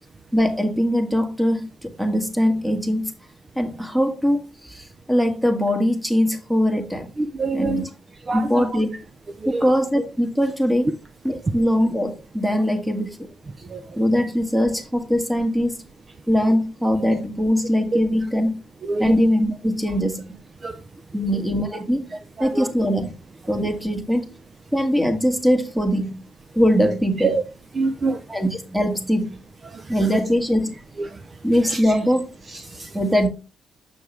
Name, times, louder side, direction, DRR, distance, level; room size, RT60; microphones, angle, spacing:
voice 1, 0.3-3.1 3.5-7.1 7.5-7.8 8.3-8.9 9.4-10.9 11.2-13.1 14.0-15.8 16.3-18.6 19.0-20.3 21.1-22.0 22.4-23.1 23.5-24.2 24.7-26.2 26.5-27.3 28.3-29.4 29.9-30.7 31.4-32.3 32.9-33.3, equal, 5° right, 1.6 m, -21 dB
voice 2, 7.2-7.9 8.3-8.6 9.4-9.6 13.7-13.8 17.9-18.0 18.8-19.1 20.6-20.8 22.4-22.7 27.2-27.4 27.7-28.2 29.7-30.0 31.0-31.2 31.7-31.8 32.5-32.9, right 3 dB, 35° right, 0.6 m, -26 dB
7.2 x 6.2 x 3.3 m
cardioid pair, 90°, 0 cm